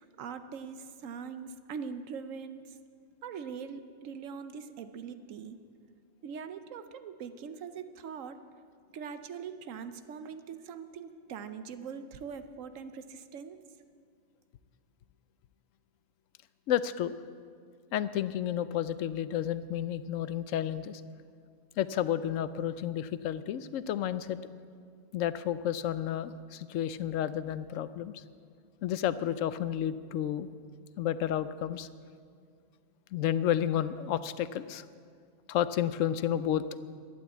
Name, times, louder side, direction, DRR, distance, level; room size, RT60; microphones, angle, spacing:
voice 1, 0.0-2.8 3.2-5.6 6.2-8.4 8.9-13.6, right 6 dB, 90° right, 10 dB, 1.1 m, -42 dB
voice 2, 16.7-17.1 17.9-21.0 21.8-24.4 25.1-28.2 28.8-30.5 31.0-31.9 33.1-34.8 35.5-36.6, left 10 dB, 85° left, 14 dB, 1.0 m, -31 dB
12.5 x 10.0 x 8.2 m, 2.2 s
omnidirectional pair, 1.3 m